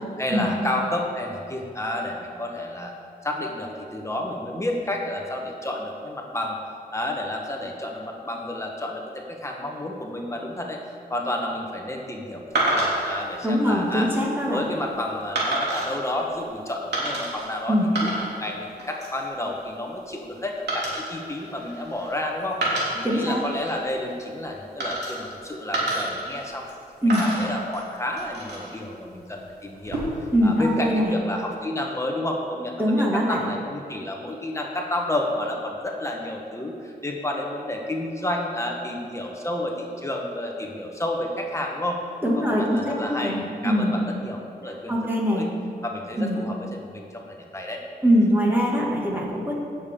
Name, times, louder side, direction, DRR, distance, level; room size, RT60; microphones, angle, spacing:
voice 1, 0.2-2.9 3.2-6.6 6.9-10.8 11.1-14.1 14.5-22.7 22.9-26.7 27.0-30.0 30.4-42.0 42.4-44.9 45.2-45.5 45.8-47.8, left 1 dB, 15° left, 0 dB, 1.1 m, -30 dB
sound 1, 12.6-13.2 13.9-14.2 15.4-16.0 16.9-17.5 17.8-18.5 18.8-19.2 20.7-22.1 22.5-23.8 24.8-25.4 25.7-26.8 27.1-28.8 29.7-30.3, right 2 dB, 85° right, 2.8 m, -29 dB
voice 2, 13.4-14.6 17.7-17.9 23.0-23.4 27.0-27.3 30.3-31.1 32.8-33.4 42.2-43.9 44.9-45.5 46.2-46.4 48.0-49.5, equal, 10° right, -4 dB, 2.1 m, -22 dB
16.5 x 7.0 x 3.7 m, 2.5 s
wide cardioid pair, 125°, 17 cm